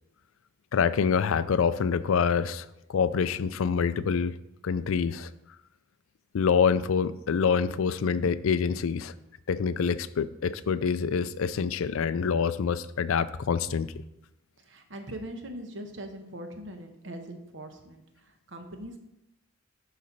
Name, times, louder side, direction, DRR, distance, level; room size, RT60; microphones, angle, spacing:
voice 1, 0.7-4.4 4.6-5.3 6.3-9.1 9.5-13.9, left 6 dB, 75° left, 15 dB, 0.4 m, -26 dB
voice 2, 14.6-19.0, right 1 dB, 60° right, 5 dB, 1.0 m, -41 dB
11.0 x 4.2 x 4.1 m, 0.88 s
head